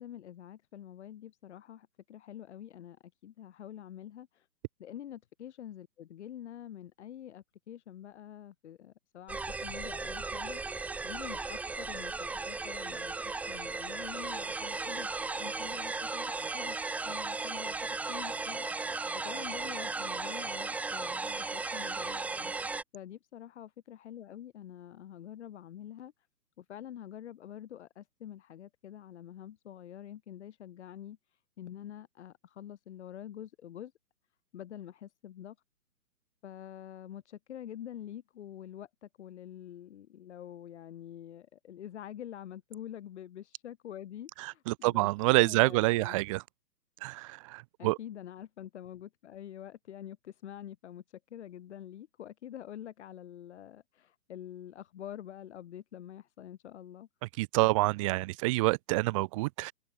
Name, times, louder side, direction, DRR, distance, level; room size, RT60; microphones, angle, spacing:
voice 1, 0.0-4.5 4.8-12.2 12.5-16.8 17.1-18.7 19.2-22.5 22.9-26.1 26.6-31.2 31.6-33.9 34.5-35.6 36.4-45.1 45.4-46.2 47.8-51.0 51.3-57.1, left 11 dB, 40° left, 7.8 m, -46 dB
sound 1, 9.3-22.8, right 3 dB, 5° right, 1.5 m, -36 dB
voice 2, 44.4-46.4 47.0-48.0 57.4-59.7, right 22 dB, 20° right, 1.6 m, -27 dB
hypercardioid pair, 155°, 49 cm